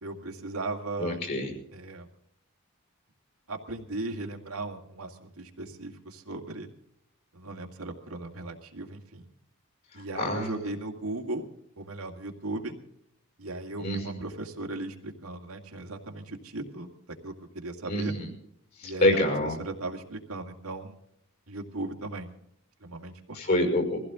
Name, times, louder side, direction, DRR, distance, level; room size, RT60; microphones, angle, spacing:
voice 1, 0.0-1.2 1.7-2.1 3.5-6.7 7.3-9.3 9.9-11.5 11.8-12.7 13.4-18.1 18.8-19.2 19.6-20.9 21.5-22.3 22.8-23.4, right 2 dB, 85° right, 2 dB, 2.2 m, -37 dB
voice 2, 1.0-1.5 10.2-10.5 13.8-14.2 17.9-18.3 18.8-19.6 23.3-24.0, left 1 dB, 45° left, 4 dB, 5.6 m, -26 dB
22.5 x 15.5 x 3.7 m, 0.72 s
head